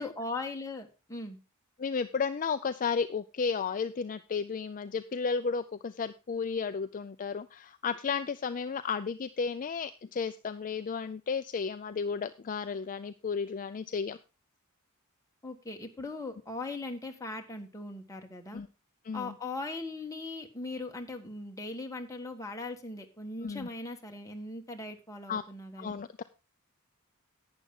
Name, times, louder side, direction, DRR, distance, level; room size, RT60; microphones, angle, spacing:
voice 1, 0.0-1.4 15.4-18.6 19.1-25.9, left 2 dB, 15° left, 3 dB, 1.4 m, -39 dB
voice 2, 1.8-14.2 18.5-18.7 19.0-19.3 23.4-23.7 25.3-25.4 25.8-26.2, left 5 dB, 40° left, 10 dB, 0.4 m, -33 dB
11.5 x 9.0 x 3.7 m, 0.30 s
head